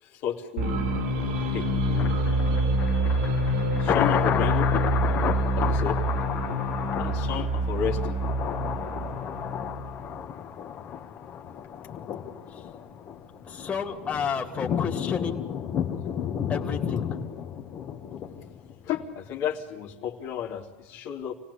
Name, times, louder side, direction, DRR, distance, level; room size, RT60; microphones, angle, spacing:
voice 1, 0.0-0.8 1.5-2.1 3.8-4.7 5.6-6.0 7.0-8.2 10.9-11.0 18.8-21.3, left 9 dB, 55° left, 0 dB, 2.9 m, -32 dB
sound 1, 0.6-10.2, right 1 dB, 85° right, 6.9 m, -26 dB
Thunder, 1.9-19.1 19.4-19.5, left 8 dB, 35° left, 2.1 m, -32 dB
voice 2, 13.5-15.4 16.5-17.1, left 6 dB, 20° left, 1 dB, 2.9 m, -31 dB
28.0 x 18.0 x 8.4 m, 1.2 s
supercardioid pair, 130°, 6 cm